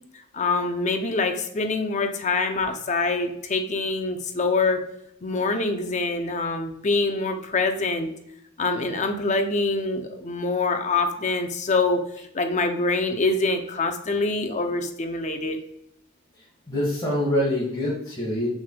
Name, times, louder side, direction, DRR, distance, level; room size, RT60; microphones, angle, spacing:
voice 1, 0.3-4.8 5.2-8.1 8.6-12.0 12.3-15.6, left 3 dB, 35° left, 5 dB, 0.6 m, -25 dB
voice 2, 16.7-18.5, left 1 dB, 20° left, -8 dB, 1.6 m, -25 dB
6.2 x 3.4 x 2.3 m, 0.78 s
head